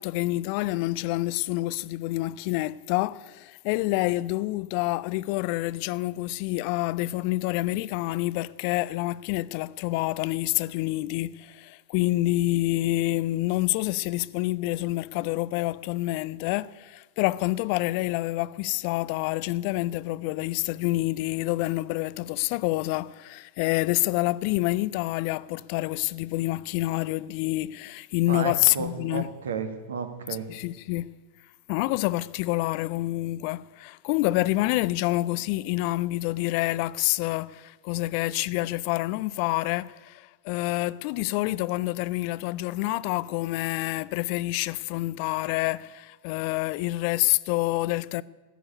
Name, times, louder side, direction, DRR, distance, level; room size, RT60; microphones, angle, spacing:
voice 1, 0.0-29.3 30.5-31.1 31.7-48.2, left 18 dB, 45° left, 0.4 m, -27 dB
voice 2, 28.3-30.5, right 6 dB, 65° right, 1.4 m, -33 dB
14.0 x 7.0 x 9.7 m
figure-of-eight pair, 90°, 0 cm